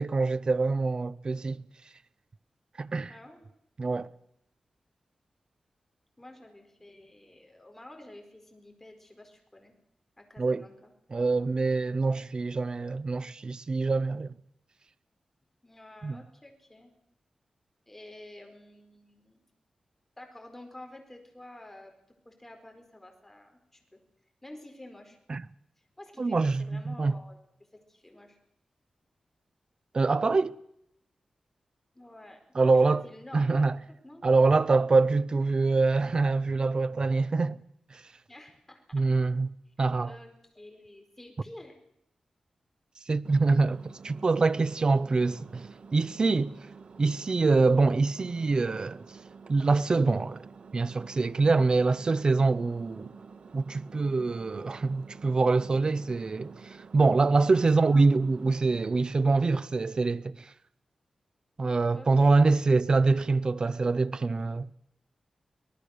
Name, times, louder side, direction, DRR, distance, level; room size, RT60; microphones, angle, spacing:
voice 1, 0.0-1.6 2.8-3.1 3.8-4.1 10.4-10.6 11.1-14.3 16.0-16.2 25.3-25.4 26.2-27.1 29.9-30.5 32.5-33.0 33.3-33.8 34.2-37.6 37.9-38.0 38.9-39.5 39.8-40.1 43.1-46.5 47.0-49.0 49.5-50.4 50.7-53.1 53.5-56.5 56.9-60.5 61.6-64.7, right 3 dB, 40° right, 0.8 m, -25 dB
voice 2, 3.1-3.5 6.2-9.7 10.2-10.9 15.6-16.9 17.9-19.5 20.2-21.9 22.2-24.0 24.4-25.2 26.0-27.4 27.9-28.4 31.9-32.4 32.7-33.4 33.9-34.3 38.3-39.1 40.0-41.8 57.6-58.1 61.9-62.6, left 1 dB, 10° left, 4.6 m, -50 dB
Engine, 43.2-58.9, right 5 dB, 60° right, 1.6 m, -50 dB
24.5 x 19.0 x 6.6 m
wide cardioid pair, 115°, 2 cm